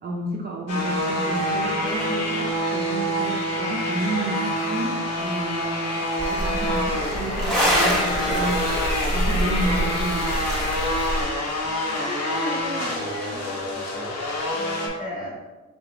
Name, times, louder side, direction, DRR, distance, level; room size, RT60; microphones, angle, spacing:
voice 1, 0.0-8.7 9.1-10.4, right 2 dB, 35° right, -1 dB, 0.5 m, -31 dB
sound 1, 0.7-14.9, left 1 dB, 55° left, 1.1 m, -26 dB
sound 2, 6.2-11.2, equal, ahead, 1.4 m, -25 dB
voice 2, 11.9-14.1 14.5-15.4, left 2 dB, 25° left, -5 dB, 1.5 m, -35 dB
4.0 x 3.9 x 2.9 m, 1.2 s
cardioid pair, 140°, 30 cm